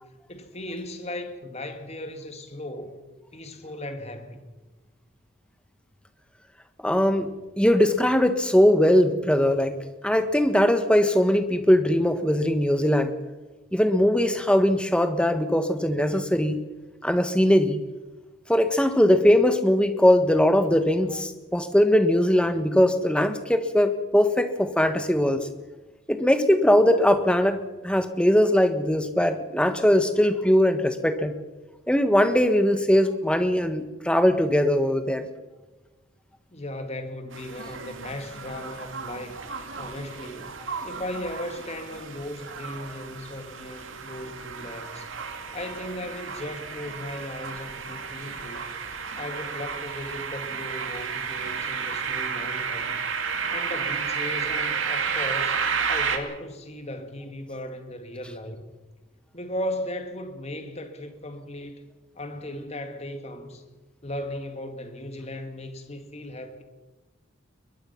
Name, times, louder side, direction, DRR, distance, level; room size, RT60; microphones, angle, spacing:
voice 1, 0.3-3.0 3.3-4.5 36.5-39.4 39.8-45.1 45.5-48.7 49.2-53.0 53.5-55.6 55.9-58.6 59.3-61.8 62.2-63.6 64.0-66.6, left 1 dB, 30° left, 2.2 m, -36 dB
voice 2, 6.8-7.3 7.6-9.8 10.0-13.1 13.7-16.6 17.0-17.8 18.5-25.5 26.1-31.3 31.9-35.2, left 1 dB, 5° left, 1.4 m, -20 dB
sound 1, 37.3-56.2, right 6 dB, 70° right, 2.5 m, -32 dB
22.0 x 22.0 x 5.8 m
head